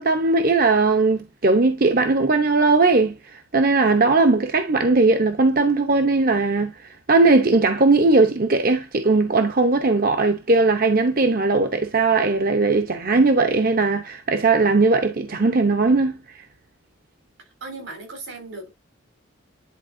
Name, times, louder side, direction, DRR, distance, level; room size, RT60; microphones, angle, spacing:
voice 1, 0.0-16.2, right 3 dB, 45° right, 0.7 m, -19 dB
voice 2, 17.6-18.7, right 3 dB, 85° right, 3.8 m, -36 dB
10.5 x 4.2 x 2.6 m
head